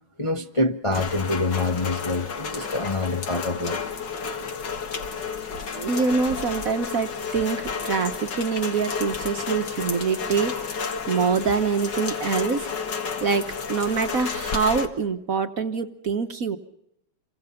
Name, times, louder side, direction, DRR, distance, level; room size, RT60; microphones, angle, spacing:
voice 1, 0.2-3.8, left 2 dB, 25° left, 4 dB, 0.8 m, -26 dB
Rain, 0.9-14.9, left 5 dB, 60° left, 2.3 m, -31 dB
voice 2, 5.7-10.6 11.1-12.7 13.2-16.6, right 5 dB, 50° right, 8 dB, 1.4 m, -25 dB
28.0 x 24.5 x 5.7 m, 0.78 s
omnidirectional pair, 2.2 m